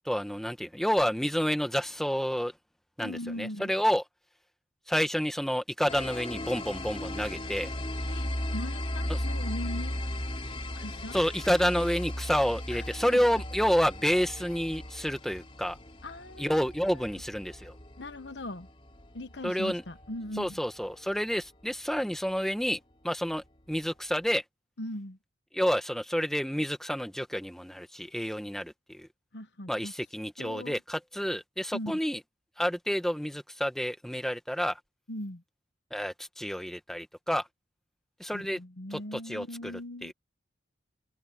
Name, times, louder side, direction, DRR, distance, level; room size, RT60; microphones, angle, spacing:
voice 1, 0.0-2.5 3.0-4.0 4.9-7.7 9.1-9.2 11.1-15.8 16.4-17.7 19.4-19.8 20.4-24.4 25.5-29.1 29.7-32.2 32.6-34.8 35.9-37.5 38.2-38.6 38.9-40.1, equal, ahead, 1.4 m, -29 dB
voice 2, 3.0-3.7 8.1-10.0 10.8-11.1 12.7-12.8 13.1-13.2 16.0-16.7 16.9-17.0 18.0-18.7 19.1-20.6 24.8-25.2 29.3-29.9 30.4-30.8 31.7-31.9 35.1-35.4 38.3-40.1, left 1 dB, 65° left, 1.1 m, -39 dB
sound 1, 5.9-21.3, left 1 dB, 30° left, 3.6 m, -37 dB
head